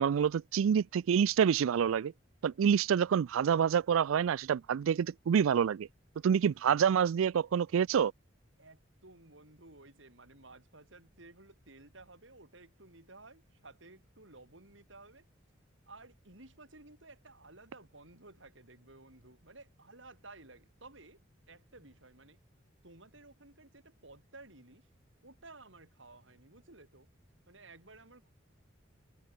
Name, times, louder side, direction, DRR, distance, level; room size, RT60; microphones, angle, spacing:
voice 1, 0.0-2.1 2.4-5.9 6.2-8.1, right 7 dB, 90° right, 0.3 m, -27 dB
voice 2, 8.6-15.3 15.9-21.2 21.5-22.4 22.8-24.9 25.2-27.1 27.5-28.3, right 2 dB, 70° right, 5.5 m, -55 dB
head